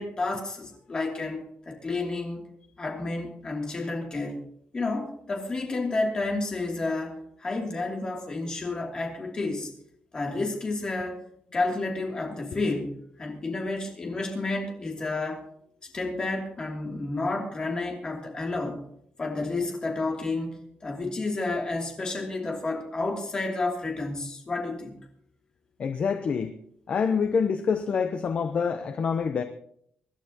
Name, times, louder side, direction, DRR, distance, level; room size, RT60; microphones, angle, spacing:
voice 1, 0.0-2.4 2.8-4.4 4.7-9.7 10.1-11.2 11.5-15.4 15.8-18.8 19.2-25.0, left 2 dB, 25° left, 0 dB, 2.8 m, -30 dB
voice 2, 25.8-26.6 26.9-29.4, left 6 dB, 45° left, 8 dB, 0.8 m, -26 dB
25.0 x 11.5 x 2.9 m, 0.69 s
wide cardioid pair, 175°, 3 cm